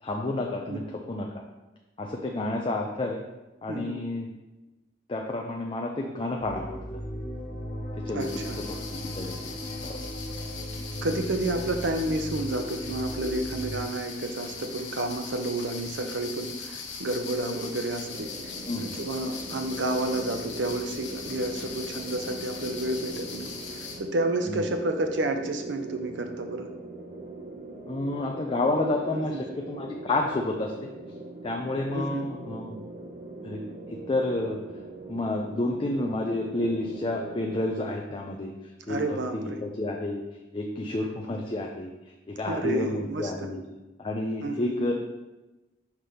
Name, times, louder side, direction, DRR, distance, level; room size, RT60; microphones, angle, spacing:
voice 1, 0.0-1.3 2.0-3.2 3.6-4.3 5.1-6.8 8.0-10.0 18.7-19.0 24.5-24.6 27.9-30.7 31.4-32.8 33.4-33.6 34.1-34.6 35.1-38.5 38.9-39.2 39.6-40.2 40.5-41.9 42.4-43.6 44.0-44.9, left 2 dB, 30° left, 1 dB, 0.5 m, -30 dB
voice 2, 3.7-4.0 8.1-8.6 11.0-26.7 29.1-29.4 31.9-32.3 38.9-39.6 42.4-43.5 44.4-44.9, right 2 dB, 80° right, 5 dB, 0.7 m, -30 dB
sound 1, 6.4-13.8, equal, 45° left, 1.0 m, -37 dB
sound 2, 8.2-24.0, left 5 dB, 85° left, 1.0 m, -40 dB
sound 3, 18.1-37.7, right 2 dB, 45° right, 0.8 m, -42 dB
5.9 x 3.3 x 5.6 m, 1.1 s
head